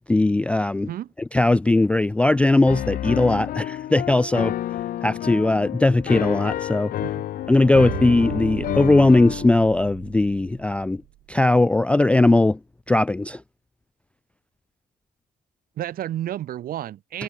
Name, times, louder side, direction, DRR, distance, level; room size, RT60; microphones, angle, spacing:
voice 1, 0.1-0.9 1.3-4.5 5.0-6.9 7.5-11.0 11.3-12.6 12.9-13.4, left 2 dB, 5° left, 0.3 m, -19 dB
Piano, 2.7-9.5, left 12 dB, 55° left, 1.2 m, -29 dB
sound 1, 7.4-11.4, right 17 dB, 75° right, 0.7 m, -36 dB
voice 2, 15.8-17.2, right 12 dB, 55° right, 2.4 m, -31 dB
cardioid pair, 170°, 18 cm